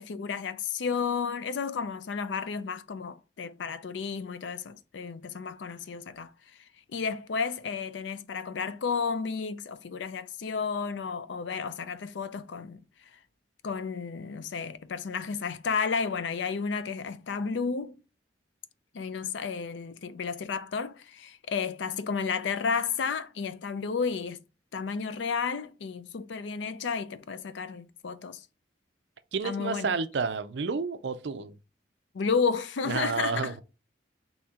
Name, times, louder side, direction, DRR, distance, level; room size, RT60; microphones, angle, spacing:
voice 1, 0.0-6.3 6.9-12.8 13.6-18.0 18.9-24.4 24.7-28.5 29.4-29.9 32.1-33.5, left 5 dB, 75° left, 0.4 m, -32 dB
voice 2, 29.3-31.5 32.9-33.5, right 5 dB, 65° right, 0.5 m, -30 dB
4.2 x 2.8 x 3.5 m
head